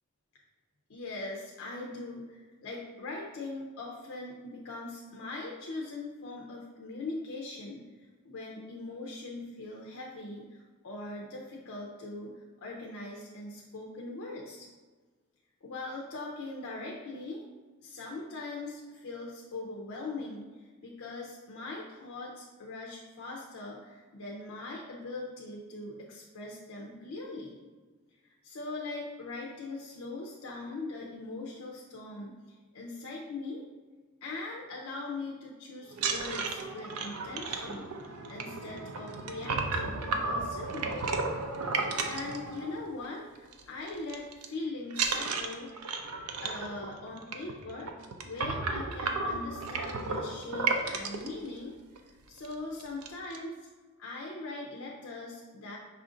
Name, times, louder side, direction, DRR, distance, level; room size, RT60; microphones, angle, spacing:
voice 1, 0.9-14.7 15.6-17.4 17.8-27.6 28.2-33.6 34.2-41.1 42.0-45.9 46.4-47.9 48.2-51.7 52.3-53.6 54.0-55.8, left 2 dB, 70° left, -2 dB, 0.5 m, -41 dB
sound 1, 35.9-43.1 43.4-43.6 43.9-44.5 44.9-51.3 52.0-52.1 52.4-52.5 52.8-53.4, right 4 dB, 85° right, 0.5 m, -33 dB
5.5 x 2.5 x 3.7 m, 1.4 s
head